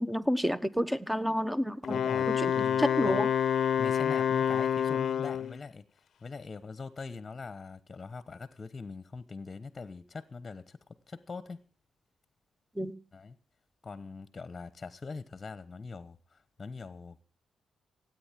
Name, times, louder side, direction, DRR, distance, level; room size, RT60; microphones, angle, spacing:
voice 1, 0.0-2.0 2.3-3.3 12.7-12.9, equal, 5° right, 1.1 m, -30 dB
Wind instrument woodwind instrument, 1.8-5.6, left 8 dB, 65° left, 0.7 m, -28 dB
voice 2, 1.9-3.3 3.8-11.6 13.1-13.4 13.8-17.2, left 4 dB, 30° left, 1.1 m, -43 dB
16.5 x 9.1 x 7.6 m
cardioid pair, 85°, 0 cm